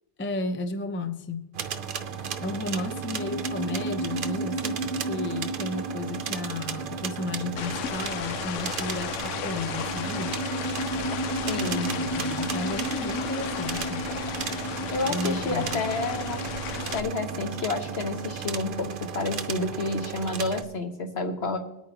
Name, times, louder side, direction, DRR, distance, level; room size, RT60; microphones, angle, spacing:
voice 1, 0.2-1.5 2.4-10.4 11.7-14.2 15.1-15.8, left 2 dB, 20° left, 0.3 m, -33 dB
sound 1, 1.5-20.6, right 7 dB, 50° right, 0.7 m, -35 dB
sound 2, 2.0-18.3, right 1 dB, ahead, 1.6 m, -35 dB
sound 3, 7.6-17.0, left 9 dB, 80° left, 0.9 m, -35 dB
voice 2, 11.5-11.8 14.9-16.4 16.7-21.6, left 3 dB, 55° left, 1.4 m, -30 dB
20.0 x 8.6 x 2.9 m
omnidirectional pair, 1.3 m